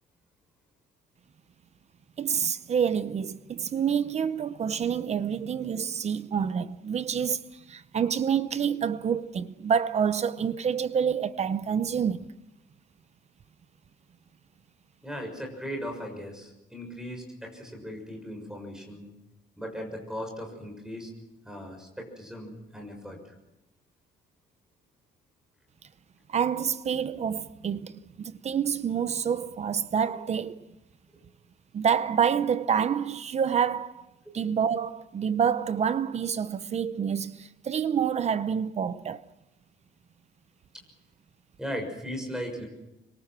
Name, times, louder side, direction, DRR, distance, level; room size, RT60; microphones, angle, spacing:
voice 1, 2.2-12.3 26.3-30.7 31.7-34.1 34.3-39.2, right 7 dB, 35° right, 0.7 m, -27 dB
voice 2, 15.0-19.1 19.6-21.1 21.4-23.4 34.2-34.4 41.6-42.7, equal, 5° right, 6.5 m, -38 dB
26.0 x 23.5 x 6.1 m
cardioid pair, 160°, 19 cm